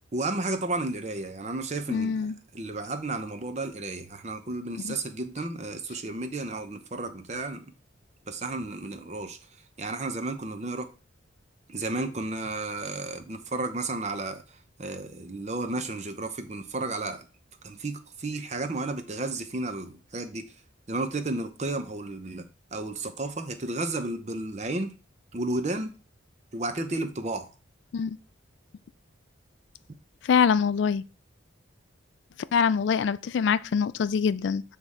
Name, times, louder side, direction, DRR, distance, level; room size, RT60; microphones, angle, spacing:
voice 1, 0.1-2.3 2.5-7.7 8.3-9.4 9.8-10.9 11.7-14.4 14.8-17.2 17.6-20.4 20.9-22.4 22.7-25.0 25.3-25.9 26.5-27.5, right 2 dB, 35° right, 0.7 m, -32 dB
voice 2, 1.9-2.3 4.8-5.0 27.9-28.2 30.2-31.0 32.5-34.6, left 6 dB, 65° left, 0.3 m, -24 dB
8.0 x 3.6 x 4.2 m
head